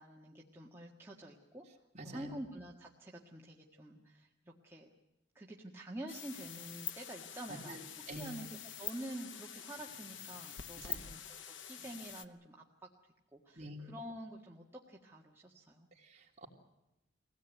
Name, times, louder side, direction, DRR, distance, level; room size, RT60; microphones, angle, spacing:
voice 1, 0.0-1.7 2.0-4.9 5.3-7.8 8.1-11.2 11.5-12.9 13.3-15.9, right 1 dB, 15° right, -2 dB, 1.6 m, -48 dB
voice 2, 1.9-2.3 7.5-7.8 8.1-8.4 10.8-11.1 13.5-13.9 15.9-16.5, right 1 dB, 40° right, 0 dB, 3.3 m, -47 dB
sound 1, 6.1-12.2, left 9 dB, 85° left, 0.9 m, -46 dB
23.0 x 17.0 x 9.2 m, 0.91 s
head